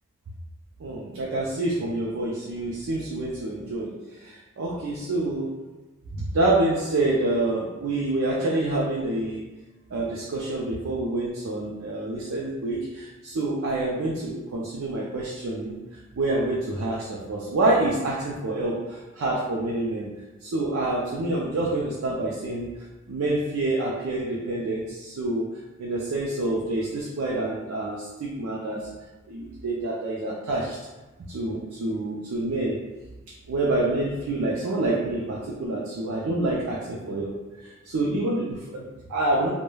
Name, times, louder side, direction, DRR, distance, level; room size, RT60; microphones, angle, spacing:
voice 1, 0.8-3.9 4.2-5.5 6.1-9.4 9.9-20.1 20.4-22.7 23.1-25.5 25.8-28.9 29.3-30.8 31.3-32.8 33.5-39.5, right 2 dB, 75° right, -3 dB, 0.4 m, -27 dB
3.1 x 2.1 x 2.2 m, 1.1 s
head